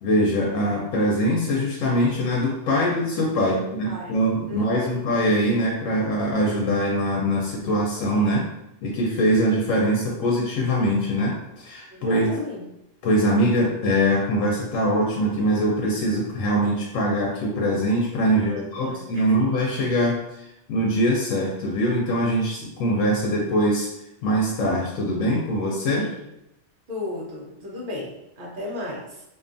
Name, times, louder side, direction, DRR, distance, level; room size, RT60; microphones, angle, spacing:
voice 1, 0.0-8.5 8.8-12.3 13.0-23.9 24.2-26.1, equal, 85° left, -2 dB, 1.0 m, -23 dB
voice 2, 3.6-4.2 4.5-5.1 11.9-12.7 18.4-19.4 26.0-26.3 26.9-29.2, left 2 dB, 50° right, -4 dB, 0.8 m, -35 dB
2.6 x 2.3 x 2.5 m, 0.86 s
omnidirectional pair, 1.3 m